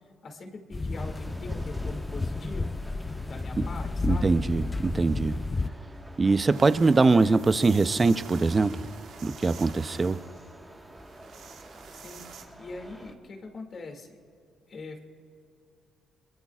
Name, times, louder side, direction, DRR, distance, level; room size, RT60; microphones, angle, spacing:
voice 1, 0.2-2.8 3.3-4.4 7.1-7.4 11.9-14.2 14.7-15.0, left 3 dB, 50° left, 3 dB, 2.3 m, -42 dB
sound 1, 0.7-5.7, left 3 dB, 25° left, 0.6 m, -32 dB
sound 2, 0.9-13.2, right 1 dB, 10° right, 1.5 m, -48 dB
voice 2, 4.0-5.4 6.2-8.8 9.2-10.2, right 3 dB, 30° right, 12 dB, 0.6 m, -22 dB
sound 3, 6.0-6.1 6.3-12.4, right 7 dB, 75° right, 1.5 m, -48 dB
26.5 x 22.0 x 2.4 m, 2.5 s
cardioid pair, 90°, 0 cm